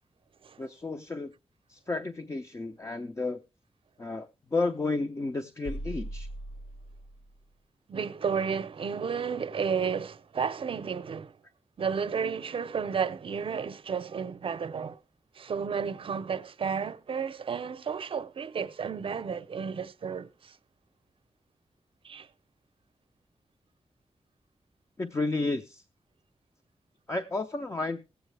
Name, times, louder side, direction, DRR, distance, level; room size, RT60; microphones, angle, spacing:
voice 1, 0.6-1.3 1.7-3.4 4.0-6.3 25.0-25.8 27.1-28.0, left 3 dB, 30° left, 0.6 m, -32 dB
sound 1, 5.6-7.5, right 1 dB, 75° left, 1.0 m, -39 dB
voice 2, 7.9-11.4 11.8-15.0 15.3-20.6 22.0-22.3, right 6 dB, 60° right, 0.6 m, -32 dB
18.5 x 8.0 x 3.2 m
wide cardioid pair, 150°, 10 cm